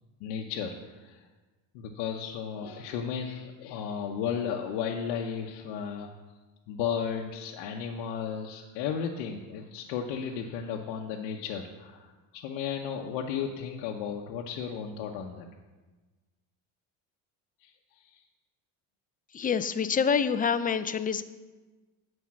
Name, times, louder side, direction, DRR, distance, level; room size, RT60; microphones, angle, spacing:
voice 1, 0.2-1.2 1.7-6.1 6.7-15.4 17.6-18.2, left 7 dB, 80° left, 0 dB, 1.0 m, -34 dB
voice 2, 19.3-21.2, left 6 dB, 20° left, 12 dB, 0.5 m, -26 dB
9.5 x 5.4 x 7.5 m, 1.3 s
supercardioid pair, 100°, 41 cm